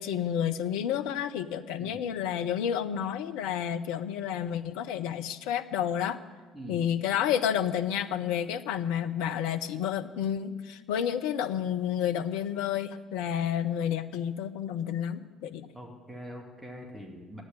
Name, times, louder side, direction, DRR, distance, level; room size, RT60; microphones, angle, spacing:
voice 1, 0.0-6.2 6.7-15.7, left 9 dB, 65° left, 9 dB, 0.6 m, -30 dB
voice 2, 1.8-2.1 6.5-6.8 15.7-17.4, equal, 5° right, 0 dB, 2.4 m, -43 dB
12.5 x 9.4 x 9.7 m, 1.4 s
figure-of-eight pair, 55°, 0 cm